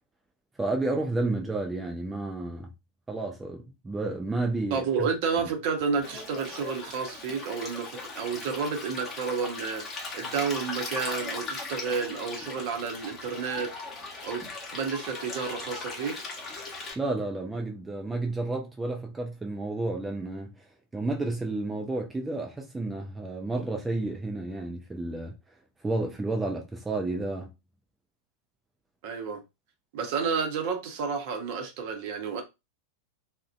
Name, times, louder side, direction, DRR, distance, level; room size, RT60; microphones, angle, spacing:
voice 1, 0.6-2.7 3.1-5.1 17.0-20.5 20.9-25.3 25.8-27.5, right 2 dB, 10° right, 0.4 m, -31 dB
voice 2, 4.7-9.9 10.1-13.7 14.2-14.4 14.7-16.3 29.0-29.4 29.9-32.4, right 5 dB, 50° right, 0.7 m, -30 dB
Stream, 6.0-16.9, left 3 dB, 25° left, 0.9 m, -38 dB
2.4 x 2.1 x 2.4 m
figure-of-eight pair, 90°, 0 cm